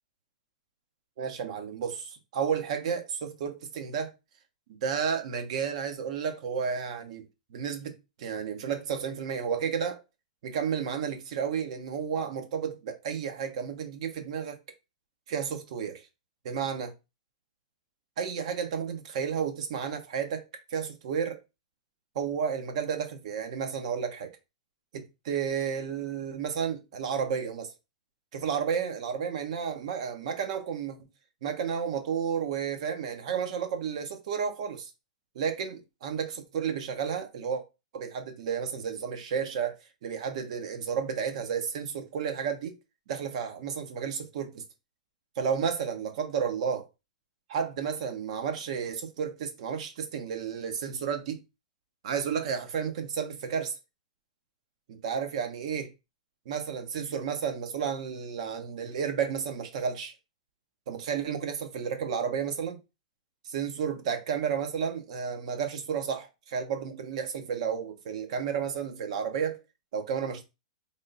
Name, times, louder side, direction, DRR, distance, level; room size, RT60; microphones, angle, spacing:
voice 1, 1.2-4.1 4.8-7.2 7.5-10.0 10.4-14.6 15.3-16.1 16.4-16.9 18.2-20.4 20.7-21.4 22.1-24.3 24.9-27.7 28.3-31.0 31.4-34.9 35.3-37.6 37.9-39.8 40.0-42.8 43.1-44.6 45.4-46.9 47.5-51.4 52.0-53.8 54.9-55.9 56.4-60.1 60.9-62.8 63.4-69.6 69.9-70.4, right 7 dB, 65° right, 1.0 m, -32 dB
3.6 x 2.6 x 3.9 m
hypercardioid pair, 145°, 4 cm